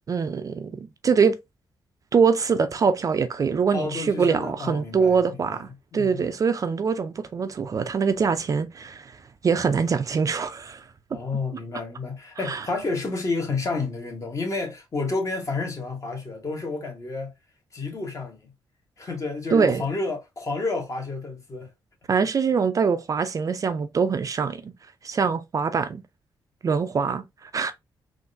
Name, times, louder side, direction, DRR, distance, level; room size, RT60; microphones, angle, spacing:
voice 1, 0.1-1.4 2.1-9.1 9.4-10.8 12.5-12.6 19.5-19.8 22.1-24.7 25.0-26.0 26.6-27.7, right 5 dB, 45° right, 0.4 m, -23 dB
voice 2, 3.7-6.3 11.1-17.3 17.7-18.5 19.0-21.7, left 3 dB, 40° left, 1.2 m, -30 dB
3.7 x 2.5 x 2.5 m
cardioid pair, 90°, 8 cm